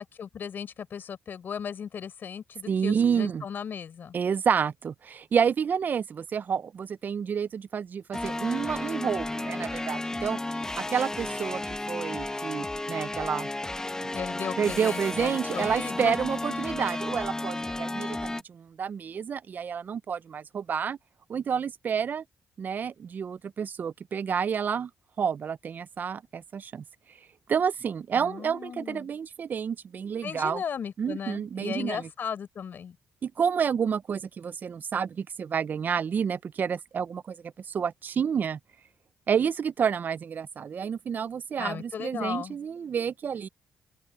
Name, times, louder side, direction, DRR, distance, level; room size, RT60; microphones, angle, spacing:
voice 1, 0.0-4.2 14.1-16.2 28.1-29.1 30.2-33.0 41.6-42.6, left 7 dB, 55° left, 4.4 m, -36 dB
voice 2, 2.7-3.4 4.1-10.4 10.8-11.6 11.9-13.5 14.0-14.1 14.6-21.0 21.3-22.2 22.6-24.9 25.2-26.8 27.5-30.6 31.0-32.1 33.2-38.6 39.3-43.5, right 7 dB, 50° right, 0.5 m, -29 dB
sound 1, 8.1-18.4, left 2 dB, 15° left, 1.1 m, -33 dB
open air
cardioid pair, 80°, 4 cm